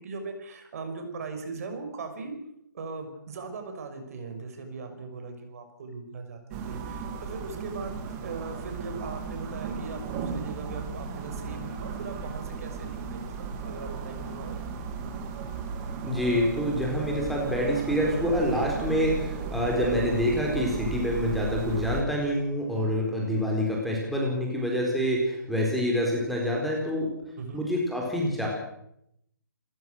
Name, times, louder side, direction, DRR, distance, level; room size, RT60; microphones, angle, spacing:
voice 1, 0.0-2.3 2.7-14.6 27.4-27.6, right 4 dB, 45° right, 6 dB, 5.8 m, -39 dB
sound 1, 6.5-22.0, right 5 dB, 20° right, 2.8 m, -35 dB
voice 2, 16.0-27.1 27.5-28.5, equal, ahead, -2 dB, 4.5 m, -27 dB
29.0 x 15.0 x 6.5 m, 0.77 s
figure-of-eight pair, 150°, 11 cm